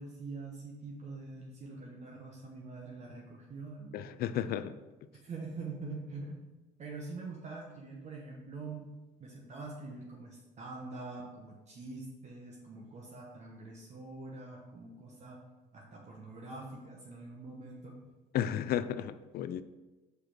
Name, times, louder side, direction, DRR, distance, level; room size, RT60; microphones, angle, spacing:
voice 1, 0.0-4.5 5.2-6.4 6.8-8.9 9.2-15.4 15.7-18.0, right 3 dB, 45° right, -2 dB, 1.0 m, -45 dB
voice 2, 3.9-4.8 18.3-19.6, left 10 dB, 65° left, 13 dB, 0.4 m, -33 dB
4.9 x 4.7 x 4.4 m, 1.1 s
cardioid pair, 110°, 17 cm